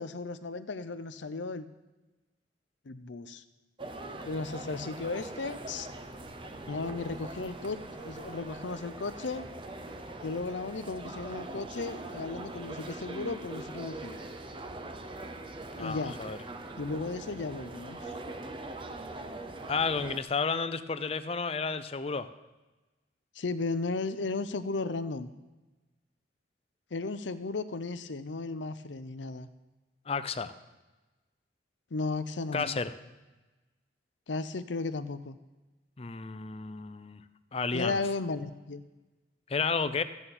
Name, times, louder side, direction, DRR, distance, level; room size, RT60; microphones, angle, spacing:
voice 1, 0.0-1.7 2.9-3.4 4.3-5.9 6.7-9.5 10.2-14.2 15.8-16.2 16.8-18.0 23.3-25.3 26.9-29.5 31.9-32.8 34.3-35.4 37.7-38.8, left 3 dB, 90° left, 12 dB, 0.7 m, -35 dB
sound 1, 3.8-20.2, right 2 dB, 30° right, 0.7 m, -42 dB
voice 2, 15.8-16.4 19.7-22.3 30.1-30.5 32.5-32.9 36.0-37.2 37.5-38.0 39.5-40.0, left 4 dB, 35° left, 12 dB, 0.5 m, -31 dB
14.5 x 8.9 x 4.3 m, 1.1 s
head